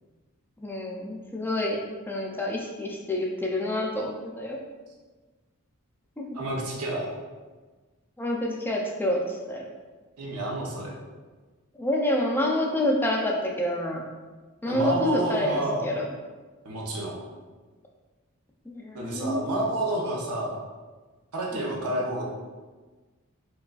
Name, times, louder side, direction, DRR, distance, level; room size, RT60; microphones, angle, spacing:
voice 1, 0.6-4.6 8.2-9.7 11.7-14.1 14.6-16.1 18.6-19.5 21.5-21.8, left 1 dB, 10° left, -2 dB, 0.3 m, -28 dB
voice 2, 6.3-7.1 10.2-10.9 14.7-15.8 16.6-17.1 18.9-20.6 21.3-22.2, right 1 dB, 90° right, -2 dB, 0.8 m, -29 dB
4.7 x 2.3 x 2.3 m, 1.3 s
head